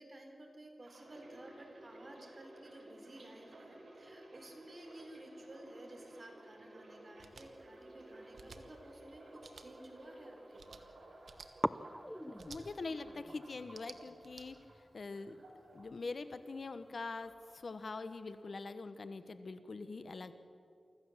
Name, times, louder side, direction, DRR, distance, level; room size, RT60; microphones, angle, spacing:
voice 1, 0.0-10.9, right 1 dB, 40° right, 3 dB, 4.1 m, -54 dB
sound 1, 0.8-16.8 17.1-18.0 18.2-18.6, right 1 dB, 65° right, 4.8 m, -56 dB
sound 2, 7.2-7.5 8.3-8.6 9.4-9.7 10.6-10.8 11.2-11.5 12.4-12.6 13.6-14.4, right 4 dB, 80° right, 1.3 m, -53 dB
sound 3, 8.0-9.8 10.1-10.8 11.0-11.1 11.6-18.4, equal, 5° left, 0.6 m, -46 dB
voice 2, 12.3-14.6 14.9-15.4 15.7-17.3 17.6-20.3, left 3 dB, 65° left, 11 dB, 1.1 m, -43 dB
24.5 x 15.0 x 7.3 m, 2.6 s
wide cardioid pair, 65°, 0 cm